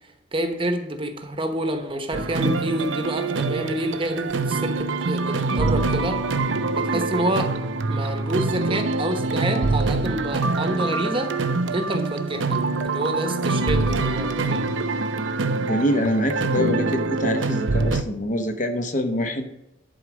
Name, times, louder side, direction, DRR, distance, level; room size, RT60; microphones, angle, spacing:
voice 1, 0.3-6.2 6.8-7.5 7.9-11.4 11.7-12.6 12.9-14.7, right 1 dB, 30° right, 6 dB, 1.0 m, -28 dB
sound 1, 2.1-18.0, right 3 dB, 90° right, 0.6 m, -25 dB
voice 2, 15.6-19.5, left 1 dB, 40° left, 6 dB, 1.0 m, -25 dB
11.0 x 4.7 x 6.1 m, 0.88 s
head